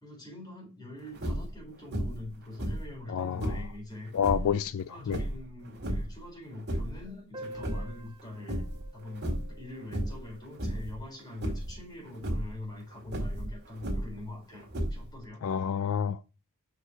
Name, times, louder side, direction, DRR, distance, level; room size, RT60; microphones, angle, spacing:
voice 1, 0.0-4.1 4.8-8.6 8.9-15.4, left 2 dB, 20° left, 3.9 m, -43 dB
sound 1, 1.1-1.6 1.9-2.3 2.6-3.7 4.2-4.5 5.1-6.2 6.5-7.1 7.4-8.2 8.5-8.9 9.2-9.6 9.9-10.3 10.6-11.0 11.4-11.8 12.1-12.5 13.1-14.2 14.7-15.2, right 1 dB, 50° right, 2.1 m, -33 dB
voice 2, 3.1-3.6 4.1-5.2 15.4-16.2, left 7 dB, 65° left, 0.4 m, -29 dB
Piano, 7.3-12.7 13.0-13.1 13.3-13.4 13.8-13.9 14.6-14.8, right 1 dB, 25° right, 1.6 m, -50 dB
6.1 x 5.3 x 4.7 m
head